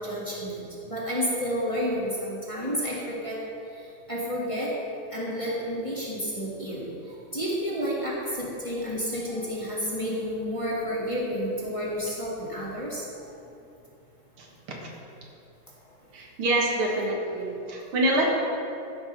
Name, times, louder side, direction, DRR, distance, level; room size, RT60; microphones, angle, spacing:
voice 1, 0.0-3.4 4.1-4.7 5.1-6.9 7.3-13.0, equal, 15° left, -6 dB, 1.8 m, -30 dB
voice 2, 14.4-14.8 16.1-18.3, right 1 dB, 85° right, -1 dB, 2.5 m, -26 dB
13.5 x 6.3 x 5.4 m, 2.7 s
omnidirectional pair, 2.3 m